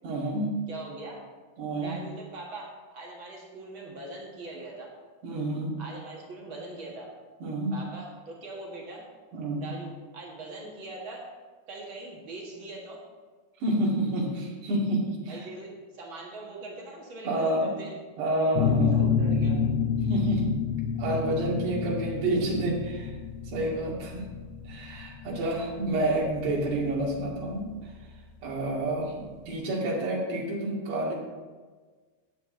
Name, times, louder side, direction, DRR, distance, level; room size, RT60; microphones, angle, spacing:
voice 1, 0.0-0.6 1.6-2.0 5.2-5.8 7.4-7.7 9.3-9.7 13.6-15.5 17.2-17.7 18.2-19.0 20.1-20.5 21.0-23.2 23.4-24.3 24.6-28.0 28.4-31.1, right 1 dB, 80° right, -4 dB, 4.4 m, -29 dB
voice 2, 0.7-1.2 1.8-4.9 5.8-7.1 7.7-9.0 9.6-11.3 11.7-13.0 15.3-17.9 18.9-19.6, right 2 dB, 45° right, -2 dB, 1.8 m, -41 dB
sound 1, 18.6-28.0, left 6 dB, 75° left, 2.3 m, -28 dB
12.5 x 9.3 x 3.9 m, 1.4 s
omnidirectional pair, 4.7 m